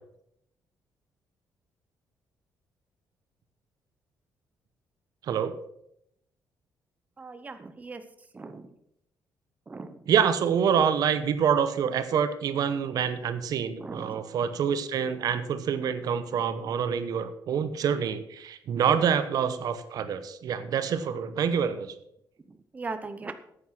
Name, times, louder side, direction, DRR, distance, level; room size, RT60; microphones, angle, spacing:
voice 1, 5.2-5.5 10.1-21.9, right 7 dB, 60° right, 12 dB, 0.9 m, -26 dB
voice 2, 7.2-8.0 8.3-8.7 9.7-10.0 13.8-14.2 22.7-23.3, right 3 dB, 20° right, 9 dB, 0.8 m, -38 dB
9.6 x 8.5 x 5.9 m, 0.75 s
cardioid pair, 130°, 7 cm